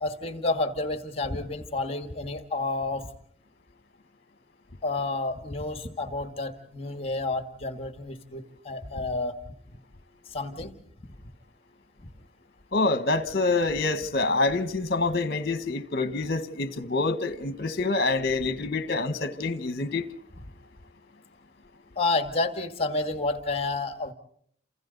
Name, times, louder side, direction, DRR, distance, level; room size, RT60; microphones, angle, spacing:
voice 1, 0.0-3.1 4.8-9.4 10.3-10.7 12.0-12.1 21.9-24.1, left 3 dB, 30° left, 1.6 m, -30 dB
voice 2, 12.7-20.0, left 3 dB, 50° left, 1.3 m, -26 dB
29.0 x 27.5 x 4.0 m
head